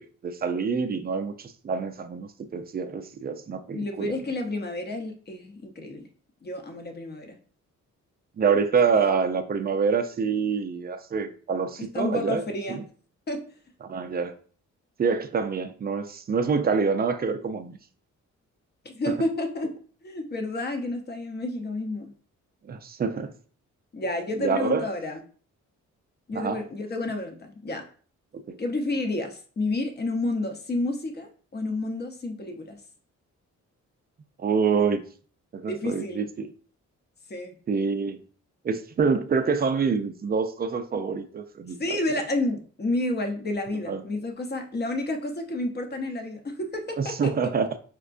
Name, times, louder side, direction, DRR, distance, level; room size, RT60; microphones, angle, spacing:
voice 1, 0.0-4.2 8.4-12.4 12.7-12.8 13.8-14.3 15.0-17.8 19.1-19.2 22.7-23.3 24.4-24.9 26.3-26.6 28.3-28.6 34.4-35.0 35.5-36.5 37.7-38.2 38.6-41.8 43.9-44.0 47.0-47.7, right 5 dB, 30° right, 0.4 m, -26 dB
voice 2, 3.7-6.1 6.4-7.4 11.9-12.8 13.3-13.4 18.8-19.7 20.0-22.1 23.9-25.2 26.3-27.8 28.6-32.8 35.6-36.2 37.3-37.6 41.8-47.3, left 2 dB, 35° left, 0.7 m, -30 dB
4.5 x 2.1 x 2.5 m
cardioid pair, 75°, 31 cm